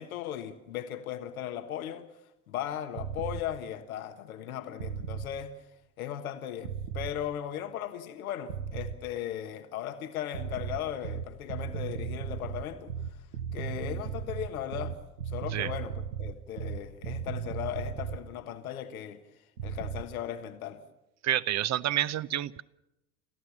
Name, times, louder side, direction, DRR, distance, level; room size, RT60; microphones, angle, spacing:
voice 1, 0.0-2.1 2.5-5.6 6.0-13.2 13.5-15.0 15.2-19.2 19.6-20.8, left 10 dB, 80° left, 1.5 m, -37 dB
sound 1, 2.9-3.4 4.8-5.3 6.6-7.2 8.5-9.0 10.3-18.2 19.6-20.0, right 7 dB, 90° right, 1.2 m, -36 dB
voice 2, 21.2-22.6, right 12 dB, 40° right, 0.8 m, -29 dB
29.5 x 14.5 x 7.3 m
hypercardioid pair, 75°, 42 cm